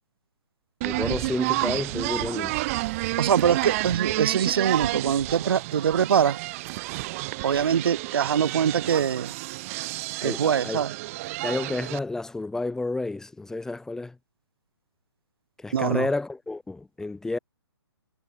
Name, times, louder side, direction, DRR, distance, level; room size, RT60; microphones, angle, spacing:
voice 1, 0.8-2.6 10.2-10.8 11.4-14.1 15.6-17.4, left 2 dB, 5° left, 0.8 m, -30 dB
sound 1, 0.8-12.0, right 21 dB, 30° right, 2.2 m, -30 dB
voice 2, 3.2-6.4 7.4-9.3 10.2-10.9 15.7-16.1, right 8 dB, 60° right, 0.8 m, -23 dB
hypercardioid pair, 140°, 14 cm